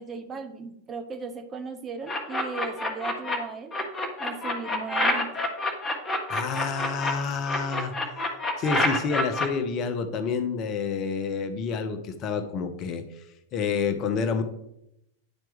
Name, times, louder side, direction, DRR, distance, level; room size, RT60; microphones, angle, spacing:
voice 1, 0.0-3.7 4.2-5.3, right 5 dB, 20° right, 6 dB, 0.8 m, -37 dB
sound 1, 2.1-3.4 3.7-7.1 7.5-9.5, left 2 dB, 15° left, 1.3 m, -27 dB
voice 2, 6.3-7.9 8.6-13.0 13.5-14.4, left 5 dB, 35° left, 9 dB, 0.7 m, -28 dB
10.5 x 4.4 x 3.5 m, 0.79 s
figure-of-eight pair, 90°, 0 cm